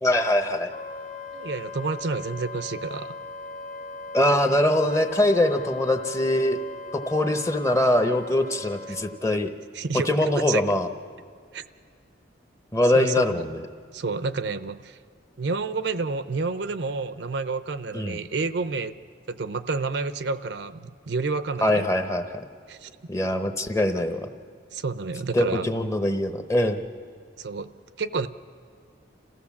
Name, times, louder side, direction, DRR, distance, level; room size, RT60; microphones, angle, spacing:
voice 1, 0.0-0.7 4.1-6.6 6.9-9.5 10.1-10.9 12.7-13.6 17.9-18.2 21.6-22.4 23.1-24.3 25.3-26.8, left 1 dB, 15° left, 7 dB, 0.8 m, -23 dB
Wind instrument woodwind instrument, 0.7-9.2, left 3 dB, 45° left, 1.8 m, -38 dB
voice 2, 1.3-3.2 8.9-9.0 9.7-10.1 10.5-10.6 11.5-11.6 12.9-13.4 13.9-15.0 15.4-18.9 19.3-21.9 22.7-22.9 24.7-25.6 27.4-28.3, right 4 dB, 65° right, 13 dB, 0.6 m, -29 dB
28.0 x 15.5 x 7.2 m, 2.2 s
head